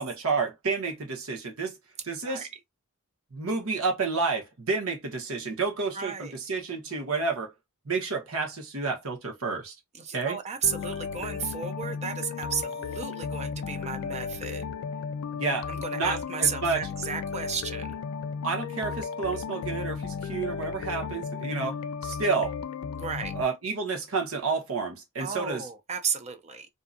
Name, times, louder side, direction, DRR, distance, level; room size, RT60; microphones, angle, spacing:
voice 1, 0.0-1.8 2.1-2.5 3.3-7.5 7.8-9.7 10.1-10.4 15.4-15.7 15.9-16.8 18.4-21.8 22.0-22.5 23.3-25.7, right 4 dB, 70° right, 1.0 m, -30 dB
voice 2, 5.9-6.3 9.9-14.6 15.7-18.0 23.0-23.3 25.2-26.7, right 6 dB, 30° right, 0.5 m, -33 dB
sound 1, 10.6-23.4, left 5 dB, 65° left, 0.3 m, -34 dB
2.7 x 2.3 x 2.5 m
head